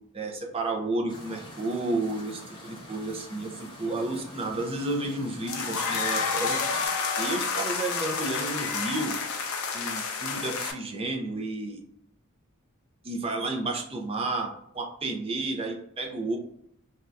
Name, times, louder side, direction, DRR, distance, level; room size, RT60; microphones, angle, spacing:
voice 1, 0.1-6.6 7.2-9.2 9.7-11.8 13.0-16.4, right 2 dB, 25° right, 1 dB, 0.5 m, -31 dB
sound 1, 1.1-6.9, left 1 dB, 20° left, 0.9 m, -45 dB
sound 2, 5.5-10.7, left 5 dB, 80° left, 0.5 m, -29 dB
2.6 x 2.3 x 3.2 m, 0.72 s
head